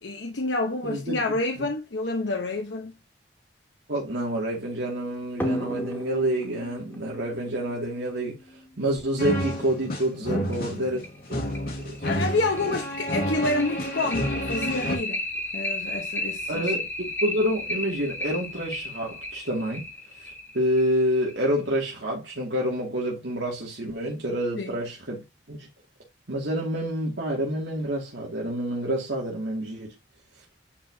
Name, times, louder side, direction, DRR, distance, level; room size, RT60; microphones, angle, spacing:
voice 1, 0.0-2.9 10.3-10.8 12.0-15.2 15.5-16.7 24.6-24.8, left 2 dB, 85° left, 1.0 m, -28 dB
voice 2, 0.8-1.2 1.6-1.7 3.9-8.4 8.8-11.0 11.3-11.4 11.8-12.0 12.6-12.8 16.5-19.9 20.2-25.7 26.3-29.9, right 1 dB, 75° right, 2.4 m, -28 dB
sound 1, 5.4-8.6 10.0-10.1 10.5-10.6 11.0-11.1 11.5-21.6, left 1 dB, 10° left, 2.5 m, -33 dB
sound 2, 9.2-15.0, equal, 55° left, 2.6 m, -30 dB
9.9 x 4.7 x 2.8 m
head